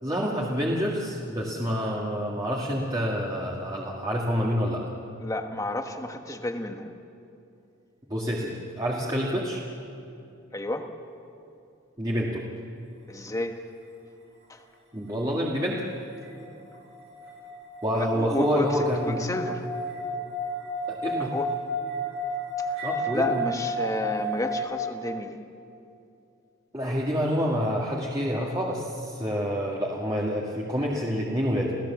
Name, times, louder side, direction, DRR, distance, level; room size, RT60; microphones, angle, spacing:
voice 1, 0.0-4.8 8.1-9.6 12.0-12.4 14.9-15.8 17.8-19.2 20.9-21.3 22.8-23.4 26.7-31.7, equal, 20° right, -3 dB, 2.0 m, -27 dB
voice 2, 5.2-6.9 10.5-10.9 13.1-13.6 14.5-14.6 17.9-19.7 21.2-21.5 22.6-25.4, left 1 dB, 15° left, 5 dB, 1.3 m, -31 dB
sound 1, 16.2-24.6, equal, 65° right, 7.0 m, -32 dB
29.0 x 16.5 x 7.3 m, 2.6 s
head